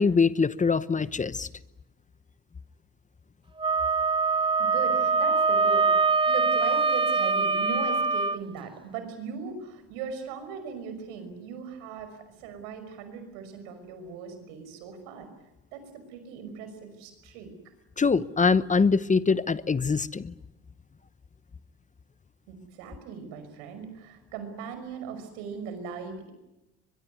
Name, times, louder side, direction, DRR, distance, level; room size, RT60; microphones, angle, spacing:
voice 1, 0.0-1.5 18.0-20.3, left 5 dB, 25° left, 16 dB, 1.0 m, -23 dB
Wind instrument woodwind instrument, 3.6-8.4, right 4 dB, 15° right, 1.1 m, -23 dB
voice 2, 4.2-15.3 15.7-17.5 22.5-26.3, right 6 dB, 85° right, 9 dB, 5.8 m, -39 dB
23.0 x 22.5 x 9.6 m, 0.98 s
hypercardioid pair, 65°, 31 cm